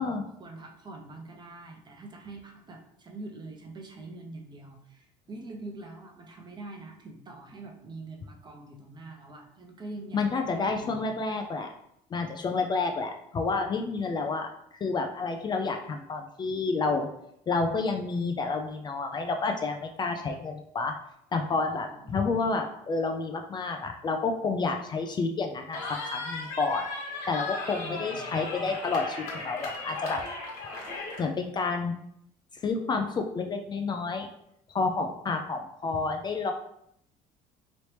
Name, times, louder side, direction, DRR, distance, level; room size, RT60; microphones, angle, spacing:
voice 1, 0.4-11.1 21.7-22.3 27.8-28.3, right 2 dB, 30° right, 1 dB, 0.8 m, -44 dB
voice 2, 10.1-11.7 12.1-14.5 14.8-17.1 17.5-21.0 21.3-26.8 27.3-30.2 31.2-31.9 32.6-34.3 34.7-36.5, left 4 dB, 30° left, 4 dB, 0.4 m, -29 dB
Cheering, 25.7-31.2, left 3 dB, 75° left, 1.1 m, -36 dB
3.0 x 2.8 x 3.2 m, 0.74 s
cardioid pair, 105°, 15 cm